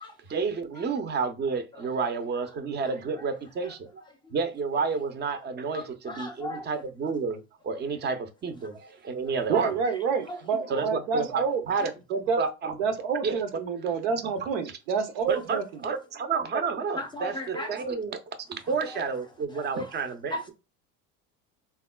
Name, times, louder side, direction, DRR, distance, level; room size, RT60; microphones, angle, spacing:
voice 1, 0.3-4.0 4.3-9.8 10.7-11.9 12.4-12.7 13.2-13.4 15.3-18.2 18.7-20.3, right 5 dB, 25° right, 0.6 m, -30 dB
voice 2, 5.7-6.8 17.0-18.0 19.8-19.9 20.3-20.5, left 1 dB, 10° left, 0.6 m, -36 dB
voice 3, 9.5-11.6 12.1-12.4 12.8-15.8, right 5 dB, 80° right, 0.7 m, -28 dB
3.5 x 2.2 x 2.2 m
hypercardioid pair, 80°, 39 cm